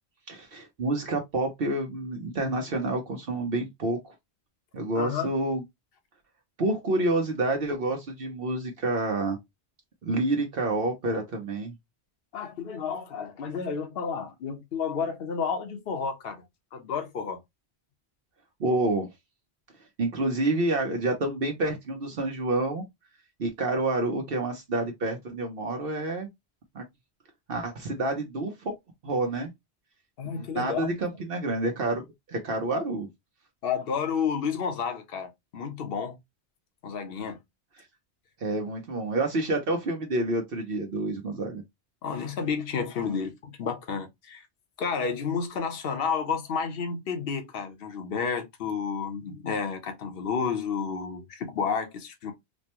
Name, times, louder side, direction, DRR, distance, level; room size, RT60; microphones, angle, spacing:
voice 1, 0.3-4.1 4.7-5.6 6.6-9.4 10.0-11.7 18.6-19.1 20.0-22.8 23.4-26.3 26.7-26.8 27.5-28.7 29.0-29.5 30.4-32.0 32.3-33.1 38.4-41.6, right 2 dB, 60° right, 1.0 m, -28 dB
voice 2, 4.9-5.3 12.3-16.4 16.7-17.4 30.2-30.9 33.6-36.2 36.8-37.4 42.0-44.5 44.8-52.3, left 6 dB, 65° left, 1.0 m, -31 dB
4.2 x 2.1 x 2.9 m
omnidirectional pair, 1.1 m